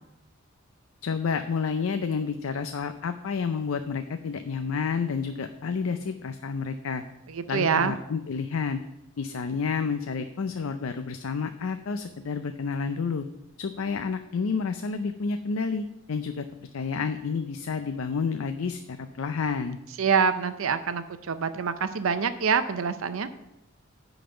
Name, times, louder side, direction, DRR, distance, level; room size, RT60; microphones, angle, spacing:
voice 1, 1.0-7.0 7.5-8.8 9.2-13.3 13.6-16.5 16.7-19.8, left 5 dB, 80° left, 8 dB, 0.5 m, -30 dB
voice 2, 7.3-7.9 20.0-23.3, right 6 dB, 80° right, 11 dB, 0.6 m, -25 dB
10.0 x 4.0 x 6.9 m, 0.89 s
head